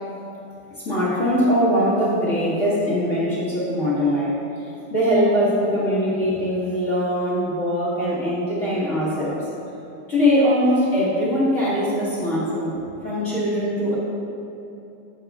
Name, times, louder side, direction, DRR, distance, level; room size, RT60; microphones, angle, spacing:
voice 1, 0.8-4.3 4.9-9.4 10.1-12.7 13.0-13.9, equal, 50° left, -9 dB, 0.9 m, -21 dB
10.0 x 5.8 x 3.5 m, 2.8 s
omnidirectional pair, 3.5 m